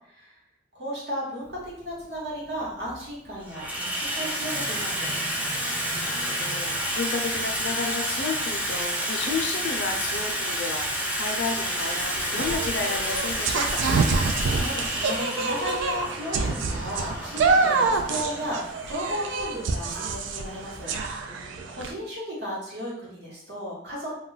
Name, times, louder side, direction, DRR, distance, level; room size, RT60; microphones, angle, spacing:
voice 1, 0.7-5.1 14.5-24.2, equal, 65° right, -6 dB, 1.0 m, -35 dB
Water tap faucet / Sink (filling or washing), 1.5-1.7 2.6-3.0 3.3-20.9, equal, 10° right, 0.4 m, -30 dB
voice 2, 5.9-13.8 21.3-21.8, left 4 dB, 70° left, 3 dB, 0.5 m, -32 dB
sound 1, 11.8-21.9, right 4 dB, 85° right, 0.3 m, -27 dB
2.3 x 2.1 x 3.8 m, 0.70 s
head